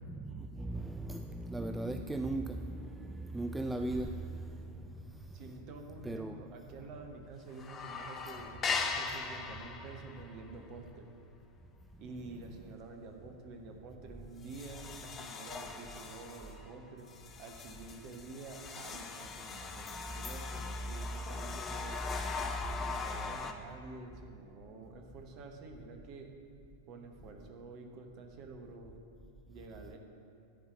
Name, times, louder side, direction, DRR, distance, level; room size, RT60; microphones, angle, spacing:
voice 1, 0.2-4.2 6.0-6.4, right 2 dB, 10° right, 6 dB, 0.3 m, -37 dB
sound 1, 5.3-5.8 6.1-6.2 6.5-7.2 7.4-12.7 13.1-13.3 13.8-13.9 14.4-23.5, left 5 dB, 25° left, 0.6 m, -41 dB
voice 2, 5.3-11.1 12.0-22.0 22.4-26.3 26.9-28.9 29.5-30.0, right 3 dB, 40° right, 3 dB, 1.1 m, -49 dB
10.5 x 4.7 x 7.3 m, 2.6 s
figure-of-eight pair, 90°, 0 cm